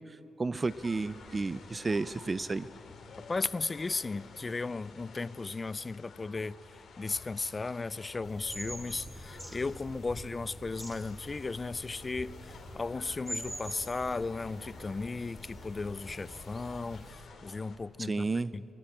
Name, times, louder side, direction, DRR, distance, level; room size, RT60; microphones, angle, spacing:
voice 1, 0.1-2.7 18.0-18.5, right 3 dB, 30° right, 0.5 m, -32 dB
sound 1, 0.7-17.8, left 4 dB, 70° left, 2.5 m, -51 dB
voice 2, 3.3-6.6 7.0-18.3 18.5-18.7, left 3 dB, 30° left, 0.4 m, -35 dB
sound 2, 8.2-17.1, equal, 15° right, 3.8 m, -45 dB
21.0 x 18.5 x 8.8 m
cardioid pair, 75°, 0 cm